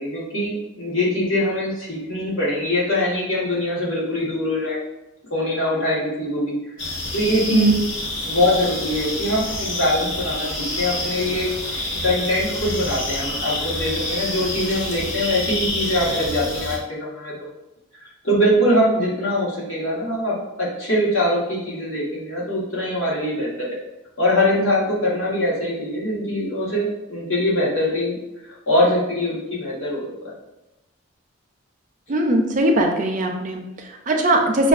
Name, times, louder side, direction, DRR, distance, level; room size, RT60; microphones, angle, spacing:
voice 1, 0.0-4.8 5.3-7.7 8.2-11.5 12.0-17.3 18.0-23.8 24.2-28.2 28.4-30.3, left 1 dB, 80° left, -6 dB, 1.4 m, -23 dB
sound 1, 6.8-16.8, left 1 dB, 65° left, 0.8 m, -28 dB
voice 2, 32.1-34.7, right 2 dB, 40° right, 2 dB, 0.4 m, -19 dB
5.9 x 2.3 x 2.4 m, 0.98 s
head